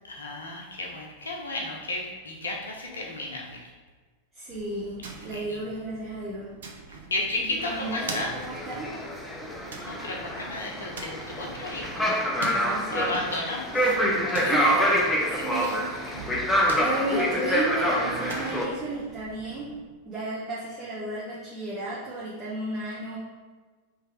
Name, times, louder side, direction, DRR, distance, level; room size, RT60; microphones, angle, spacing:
voice 1, 0.1-3.7 5.3-5.6 7.1-8.3 9.9-12.0 12.9-13.9, left 2 dB, 70° left, 0 dB, 0.8 m, -33 dB
voice 2, 4.3-6.5 7.4-8.9 12.4-13.1 14.4-16.4 16.8-19.7 20.0-23.2, right 2 dB, 20° right, -9 dB, 1.2 m, -33 dB
sound 1, 4.5-19.8, right 4 dB, 65° right, 0.6 m, -44 dB
sound 2, 7.6-18.7, equal, 10° left, 0.6 m, -27 dB
3.3 x 3.2 x 4.7 m, 1.4 s
figure-of-eight pair, 90°, 0 cm